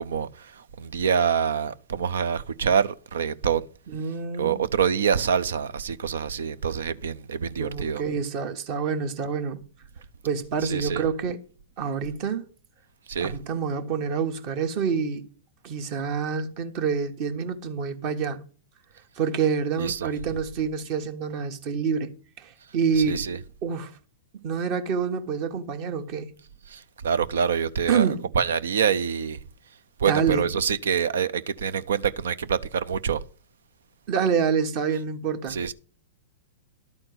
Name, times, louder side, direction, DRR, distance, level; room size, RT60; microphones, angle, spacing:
voice 1, 0.0-3.7 4.4-8.0 10.6-11.0 13.1-13.3 19.8-20.1 23.0-23.4 26.7-28.1 28.3-29.4 30.0-33.2 35.5-35.7, right 7 dB, 80° right, 0.6 m, -26 dB
voice 2, 3.9-4.6 7.6-9.6 10.2-11.4 11.8-12.5 13.2-15.3 15.6-18.4 19.2-23.2 23.6-23.9 24.4-26.3 27.9-28.2 30.0-30.4 34.1-35.6, right 6 dB, 50° right, 1.3 m, -27 dB
12.0 x 4.4 x 7.8 m
hypercardioid pair, 115°, 0 cm